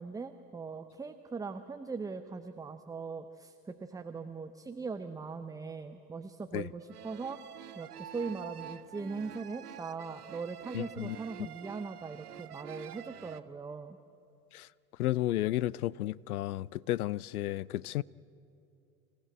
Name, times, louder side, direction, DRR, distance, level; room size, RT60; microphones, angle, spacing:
voice 1, 0.0-7.4 7.7-14.0, right 4 dB, 10° right, 0.6 m, -40 dB
sound 1, 6.8-13.4, right 10 dB, 75° right, 0.8 m, -47 dB
voice 2, 10.7-11.2 14.5-14.7 15.0-18.0, left 15 dB, 70° left, 0.5 m, -32 dB
25.5 x 15.5 x 8.7 m
figure-of-eight pair, 70°, 46 cm